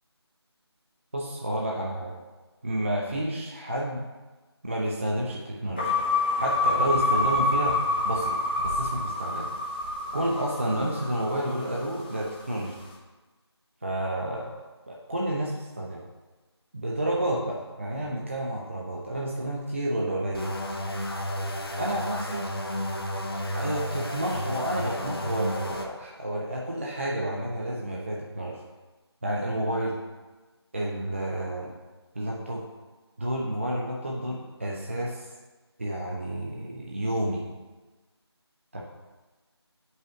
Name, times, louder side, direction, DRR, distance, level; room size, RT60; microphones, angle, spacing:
voice 1, 1.1-2.1 2.6-4.0 4.6-5.9 6.4-7.8 8.0-8.4 8.6-9.5 10.1-12.8 13.8-14.5 14.9-16.0 16.7-20.5 21.8-22.5 23.5-28.6 29.2-30.0 30.7-31.7 32.1-32.6 33.2-35.3 35.8-37.5 38.7-38.8, right 1 dB, 30° right, -2 dB, 0.5 m, -30 dB
sound 1, 5.8-12.1, left 2 dB, 20° left, 0.7 m, -27 dB
sound 2, 20.3-25.9, equal, 60° left, 0.9 m, -32 dB
8.4 x 5.4 x 3.1 m, 1.2 s
figure-of-eight pair, 165°, 14 cm